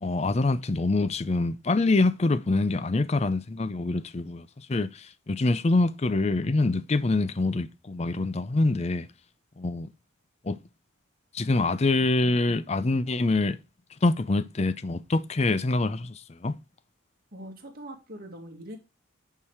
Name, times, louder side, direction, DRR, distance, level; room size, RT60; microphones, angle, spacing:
voice 1, 0.0-9.1 9.6-9.9 10.4-10.6 11.3-13.6 14.0-16.6, left 2 dB, 30° left, 0.4 m, -25 dB
voice 2, 17.3-18.8, equal, 45° right, 2.0 m, -42 dB
8.7 x 4.7 x 4.8 m
head